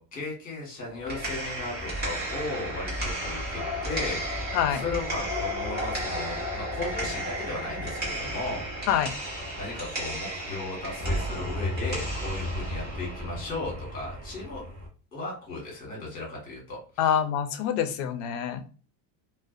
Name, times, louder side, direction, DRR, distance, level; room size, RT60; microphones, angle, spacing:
voice 1, 0.0-8.6 9.6-14.6 15.1-17.1, left 3 dB, 15° left, -2 dB, 1.2 m, -36 dB
sound 1, 0.9-14.9, equal, 20° right, 1.0 m, -33 dB
voice 2, 17.0-18.6, left 9 dB, 55° left, 9 dB, 0.5 m, -26 dB
2.5 x 2.1 x 2.3 m, 0.38 s
supercardioid pair, 150°, 49 cm